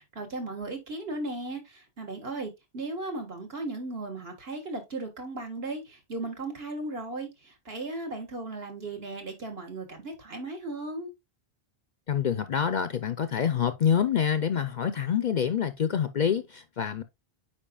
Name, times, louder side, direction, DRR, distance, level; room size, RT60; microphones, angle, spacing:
voice 1, 0.0-11.1, right 2 dB, 65° right, 1.9 m, -36 dB
voice 2, 12.1-17.0, left 8 dB, 55° left, 0.6 m, -26 dB
8.8 x 4.8 x 2.3 m
omnidirectional pair, 1.1 m